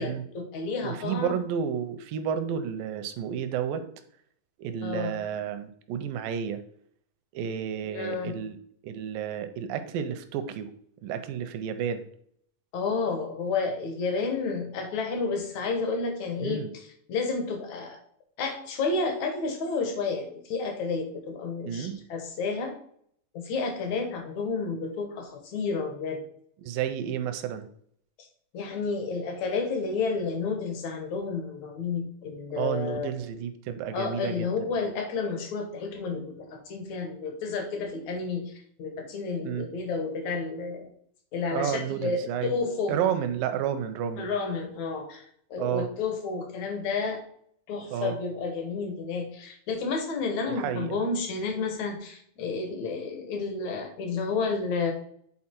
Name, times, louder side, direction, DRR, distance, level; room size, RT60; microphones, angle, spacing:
voice 1, 0.0-1.4 4.8-5.2 7.8-8.4 12.7-18.0 18.4-22.8 23.3-26.2 28.5-33.1 33.9-38.5 38.8-40.9 41.3-42.9 44.2-45.3 45.5-47.2 47.7-54.9, left 4 dB, 65° left, 4 dB, 2.1 m, -31 dB
voice 2, 0.8-3.8 4.6-6.6 7.3-8.6 8.8-10.7 11.0-12.1 16.4-16.7 21.6-22.0 26.6-27.7 32.6-34.7 39.4-39.7 41.5-42.5 42.9-44.3 45.6-45.9 47.9-48.2 50.6-51.0, right 8 dB, 80° right, 9 dB, 2.1 m, -31 dB
8.7 x 4.0 x 4.4 m, 0.64 s
omnidirectional pair, 4.3 m